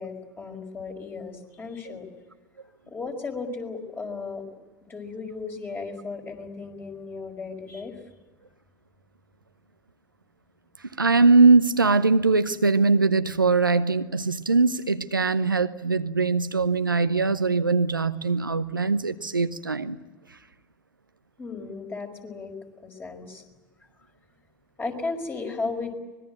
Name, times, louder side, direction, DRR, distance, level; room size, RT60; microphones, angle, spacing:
voice 1, 0.0-2.1 2.9-4.4 4.8-8.0 21.4-22.5 22.8-23.4 24.8-25.9, left 4 dB, 20° left, 3 dB, 5.4 m, -35 dB
voice 2, 11.0-20.0, right 3 dB, 90° right, 11 dB, 0.9 m, -21 dB
25.0 x 21.0 x 9.1 m, 1.2 s
figure-of-eight pair, 75°, 11 cm